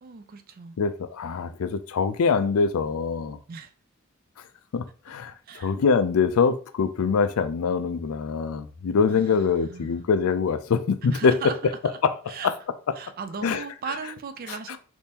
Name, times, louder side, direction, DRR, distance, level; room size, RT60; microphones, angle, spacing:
voice 1, 0.0-0.8 3.5-3.7 5.5-5.7 9.1-10.0 11.1-11.6 11.8-12.0 12.3-12.5 13.0-14.8, right 5 dB, 40° right, 0.4 m, -37 dB
voice 2, 0.8-3.4 4.7-11.4 12.0-12.1 12.4-12.5 13.4-13.6 14.5-14.8, left 5 dB, 80° left, 0.4 m, -24 dB
3.6 x 2.6 x 2.8 m
head